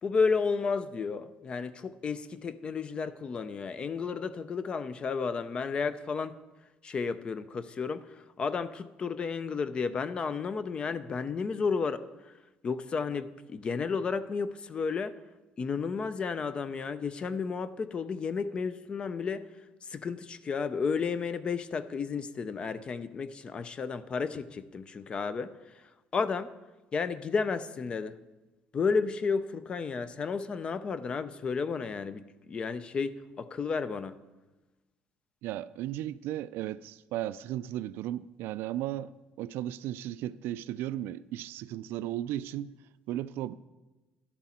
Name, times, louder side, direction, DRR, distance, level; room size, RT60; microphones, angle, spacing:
voice 1, 0.0-6.4 6.8-12.3 12.6-15.2 15.6-19.5 19.8-26.5 26.9-28.2 28.7-34.2, left 5 dB, 25° left, 0.4 m, -32 dB
voice 2, 35.4-39.1 39.4-42.7 43.1-43.5, right 13 dB, 80° right, 0.4 m, -35 dB
11.5 x 11.0 x 4.3 m
cardioid pair, 170°, 4 cm